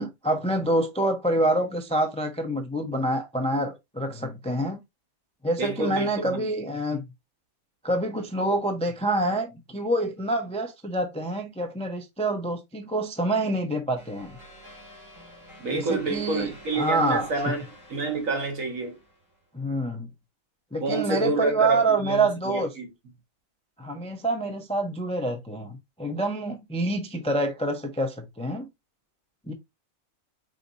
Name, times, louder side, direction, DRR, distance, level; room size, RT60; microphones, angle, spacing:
voice 1, 0.0-4.8 5.4-7.0 7.8-14.4 15.7-17.3 19.5-20.1 20.7-22.8 23.8-28.7 29.5-29.6, right 2 dB, 10° left, 0.4 m, -27 dB
voice 2, 5.6-6.5 15.6-17.6 17.9-19.0 20.8-22.9, right 3 dB, 70° right, 1.7 m, -28 dB
sound 1, 14.0-19.4, equal, 15° right, 2.3 m, -48 dB
5.1 x 4.0 x 2.6 m
omnidirectional pair, 1.4 m